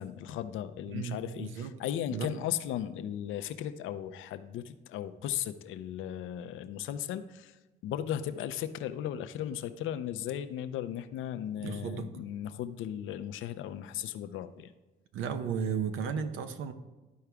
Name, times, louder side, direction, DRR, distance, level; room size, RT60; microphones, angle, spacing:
voice 1, 0.0-7.5 7.8-14.7, left 10 dB, 85° left, 10 dB, 0.5 m, -36 dB
voice 2, 0.9-1.7 2.1-2.4 11.6-12.1 15.1-16.7, right 7 dB, 85° right, 9 dB, 0.8 m, -34 dB
12.0 x 4.7 x 3.4 m, 1.1 s
cardioid pair, 90°, 20 cm